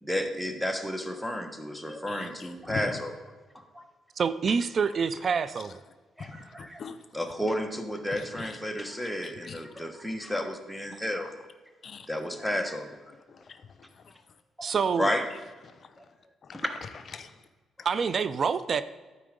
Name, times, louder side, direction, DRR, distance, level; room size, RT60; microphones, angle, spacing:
voice 1, 0.0-3.1 3.5-3.8 6.2-6.8 7.1-11.3 12.1-13.0 14.6-14.7 15.0-15.3 16.0-16.1 16.5-16.7, equal, ahead, 6 dB, 1.2 m, -32 dB
voice 2, 2.1-3.0 5.1-5.7 6.2-7.2 8.1-8.6 9.2-9.7 10.9-11.0 11.8-12.1 12.4-12.5 13.1-14.4 15.3-17.5 17.8-17.9, left 5 dB, 50° left, 9 dB, 0.6 m, -44 dB
voice 3, 4.2-5.7 14.6-15.1 17.9-18.8, right 6 dB, 50° right, 14 dB, 0.4 m, -26 dB
12.0 x 4.7 x 5.1 m, 1.3 s
cardioid pair, 90°, 0 cm